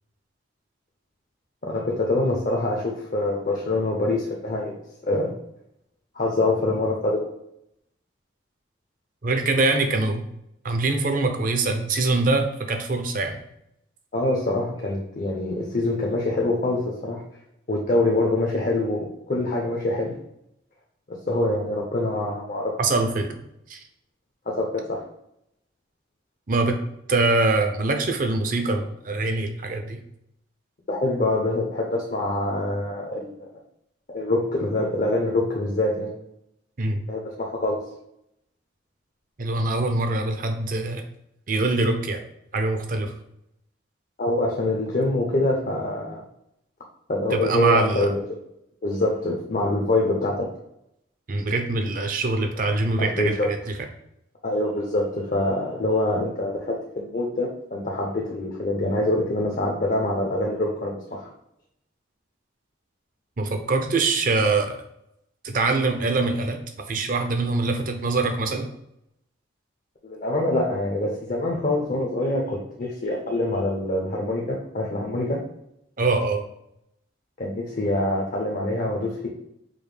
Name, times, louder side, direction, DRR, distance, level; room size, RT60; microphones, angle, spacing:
voice 1, 1.6-4.7 5.0-5.3 6.2-7.3 14.1-17.2 17.7-20.1 21.1-22.7 24.5-25.0 30.9-33.5 34.1-36.1 37.1-37.8 44.2-46.2 47.1-48.2 48.8-50.5 53.0-53.5 54.4-61.3 70.0-75.5 77.4-79.3, left 2 dB, 45° left, -1 dB, 0.5 m, -25 dB
voice 2, 9.2-10.3 10.6-13.4 22.8-23.4 23.7-23.8 26.5-26.8 27.1-30.0 36.8-37.0 39.4-41.0 41.5-42.2 42.5-43.1 47.3-48.1 51.3-53.6 63.4-64.8 65.4-68.7 76.0-76.4, right 3 dB, 45° right, 5 dB, 0.5 m, -23 dB
5.0 x 2.1 x 3.2 m, 0.79 s
head